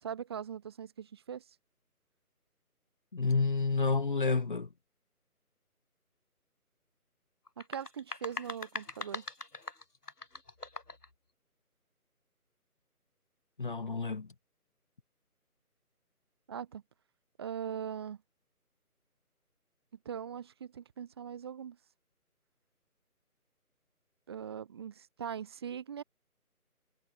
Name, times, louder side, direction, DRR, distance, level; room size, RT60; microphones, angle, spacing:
voice 1, 0.0-1.4 7.6-9.2 16.5-16.8 17.4-18.2 20.0-21.8 24.3-26.0, right 8 dB, 15° right, 4.2 m, -41 dB
voice 2, 3.1-4.7 13.6-14.3, left 4 dB, 35° left, 2.6 m, -29 dB
sound 1, 7.5-11.1, left 2 dB, 85° left, 5.9 m, -42 dB
figure-of-eight pair, 170°, 45 cm